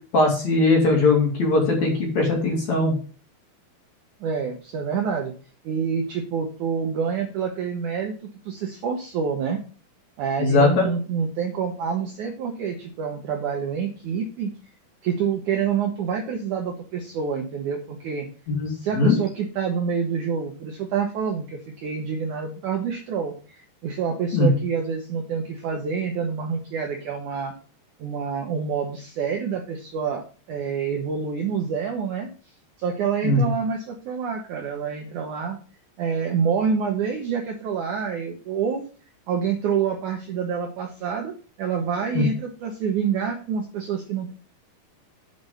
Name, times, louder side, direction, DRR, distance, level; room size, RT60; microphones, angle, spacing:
voice 1, 0.1-2.9 10.4-10.9 18.5-19.2 24.3-24.5 33.2-33.5 42.1-42.2, left 3 dB, 50° left, 0 dB, 3.2 m, -20 dB
voice 2, 4.2-5.3 5.6-8.1 8.5-9.6 10.2-14.5 15.0-18.3 18.7-27.5 28.0-32.3 32.8-35.6 36.0-38.8 39.3-41.3 41.6-44.3, right 6 dB, 75° right, 2 dB, 1.9 m, -27 dB
8.0 x 5.2 x 5.5 m, 0.39 s
omnidirectional pair, 4.7 m